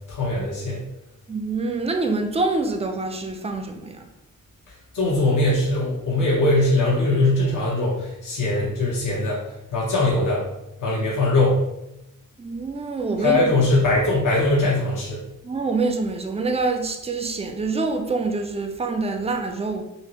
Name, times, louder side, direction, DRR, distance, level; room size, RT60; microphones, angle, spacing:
voice 1, 0.1-0.8 4.9-9.4 9.7-10.4 10.8-11.6 13.2-15.2, left 2 dB, 65° left, 1.0 m, -21 dB
voice 2, 1.3-4.0 12.4-13.5 15.4-19.8, right 3 dB, 20° right, 0.4 m, -26 dB
5.3 x 2.1 x 2.9 m
wide cardioid pair, 130°, 34 cm